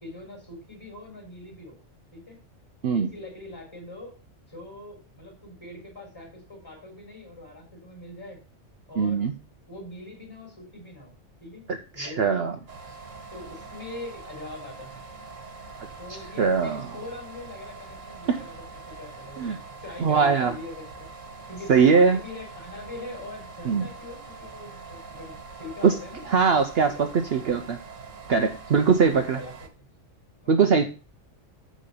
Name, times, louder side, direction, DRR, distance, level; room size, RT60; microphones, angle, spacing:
voice 1, 0.0-1.8 2.1-2.4 2.9-4.1 4.5-8.4 8.9-9.3 9.7-11.1 11.4-11.6 11.9-12.4 12.9-13.0 13.3-15.0 16.0-19.5 19.8-21.1 21.5-26.2 26.8-27.7 28.8-29.9 30.4-30.9, left 2 dB, 20° left, 0 dB, 3.7 m, -42 dB
voice 2, 9.0-9.3 12.0-12.6 16.4-16.9 18.3-18.4 19.4-19.6 20.0-20.5 21.7-22.2 23.7-23.8 25.8-25.9 26.3-27.8 28.3-29.4 30.5-30.8, right 5 dB, 55° right, 6 dB, 0.9 m, -21 dB
sound 1, 12.7-29.7, right 4 dB, 85° right, 1.8 m, -44 dB
7.5 x 5.2 x 6.9 m, 0.34 s
omnidirectional pair, 1.3 m